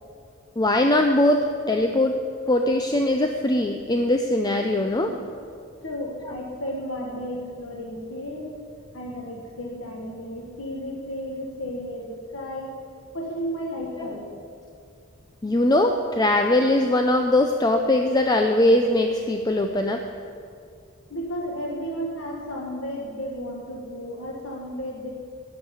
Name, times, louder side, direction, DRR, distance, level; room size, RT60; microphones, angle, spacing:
voice 1, 0.6-1.4 1.7-2.2 2.5-5.1 14.0-14.1 15.4-20.0, left 1 dB, 20° left, 4 dB, 0.5 m, -21 dB
voice 2, 5.8-8.6 8.9-12.7 13.1-14.4 21.1-25.1, equal, 75° left, -2 dB, 1.4 m, -33 dB
12.0 x 6.6 x 9.7 m, 2.3 s
head